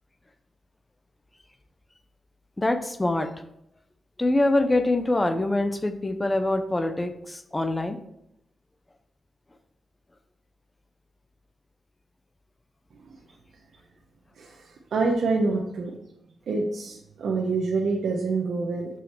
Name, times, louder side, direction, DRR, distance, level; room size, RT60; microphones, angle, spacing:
voice 1, 2.6-3.3 4.2-8.0, left 2 dB, 15° left, 9 dB, 0.5 m, -24 dB
voice 2, 14.4-16.0 16.5-18.9, right 3 dB, 70° right, -1 dB, 0.9 m, -26 dB
6.3 x 6.3 x 4.5 m, 0.81 s
wide cardioid pair, 160°, 0 cm